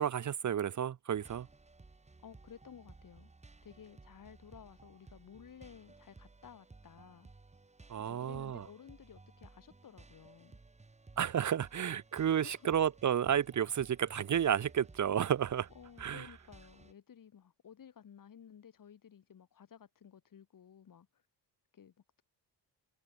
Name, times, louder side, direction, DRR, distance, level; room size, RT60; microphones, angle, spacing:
voice 1, 0.0-1.5 7.9-8.6 11.2-15.7 16.0-16.3, right 9 dB, 45° right, 1.0 m, -31 dB
sound 1, 1.1-16.9, right 3 dB, 15° right, 2.9 m, -58 dB
voice 2, 2.2-3.3 3.6-7.3 8.0-10.6 12.2-12.7 15.7-21.2 21.7-22.2, left 8 dB, 50° left, 7.7 m, -55 dB
wide cardioid pair, 160°, 40 cm